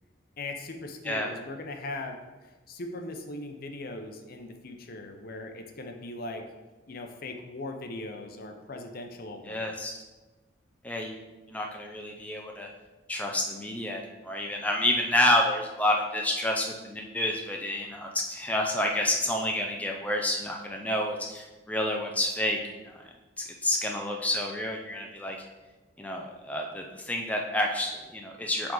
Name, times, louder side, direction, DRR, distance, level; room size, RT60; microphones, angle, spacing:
voice 1, 0.4-6.4 6.9-10.0, left 2 dB, 50° left, 4 dB, 0.6 m, -39 dB
voice 2, 9.5-9.9 10.8-11.2 11.5-12.7 13.1-22.6 22.9-23.0 23.4-25.4 26.0-28.7, left 1 dB, 10° left, 0 dB, 0.4 m, -29 dB
7.5 x 3.6 x 3.9 m, 1.2 s
head